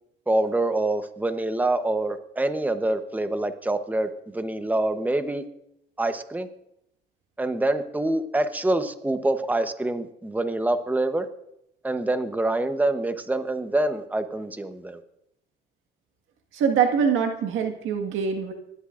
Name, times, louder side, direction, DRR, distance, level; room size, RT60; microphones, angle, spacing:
voice 1, 0.3-5.4 6.0-6.5 7.4-11.3 11.8-15.0, right 2 dB, 10° right, 9 dB, 0.9 m, -26 dB
voice 2, 16.5-18.5, right 7 dB, 90° right, 5 dB, 1.7 m, -23 dB
25.5 x 12.0 x 2.5 m, 0.80 s
cardioid pair, 90°, 20 cm